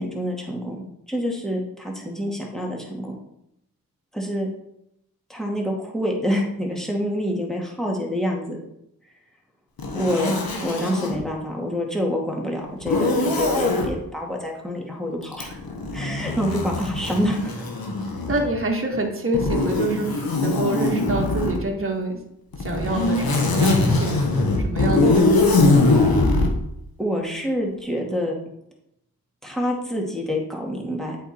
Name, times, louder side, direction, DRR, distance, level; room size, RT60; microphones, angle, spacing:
voice 1, 0.0-3.2 4.1-4.5 5.3-8.6 10.0-10.3 10.6-15.6 15.9-17.5 25.0-25.5 27.0-28.3 29.4-31.2, equal, ahead, -2 dB, 2.3 m, -27 dB
Zipper (clothing), 9.8-11.2 12.8-13.9 15.3-18.6 19.3-21.6 22.5-26.5, left 2 dB, 75° left, 1.5 m, -22 dB
voice 2, 18.3-22.2 22.6-25.6, right 2 dB, 35° right, 1 dB, 1.7 m, -27 dB
8.1 x 4.8 x 4.4 m, 0.79 s
cardioid pair, 65°, 36 cm